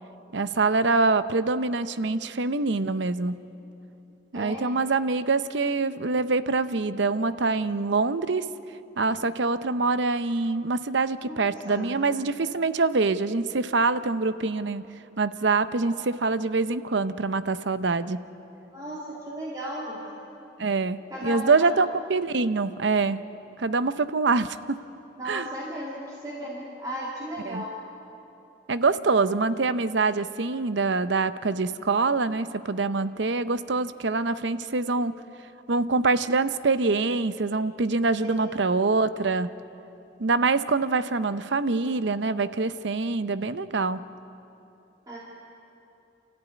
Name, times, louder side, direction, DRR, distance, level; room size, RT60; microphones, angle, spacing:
voice 1, 0.3-3.4 4.3-8.5 9.0-14.9 15.2-18.2 20.6-23.2 23.6-24.8 25.3-25.5 27.4-27.6 28.7-35.1 35.7-39.5 40.2-44.1, right 3 dB, 65° right, 13 dB, 0.7 m, -25 dB
voice 2, 4.3-4.7 11.2-11.9 15.8-15.9 18.7-20.2 21.1-21.7 25.2-27.8 38.2-38.5 45.1-45.2, equal, 20° right, -5 dB, 2.4 m, -36 dB
28.0 x 14.0 x 9.4 m, 2.9 s
head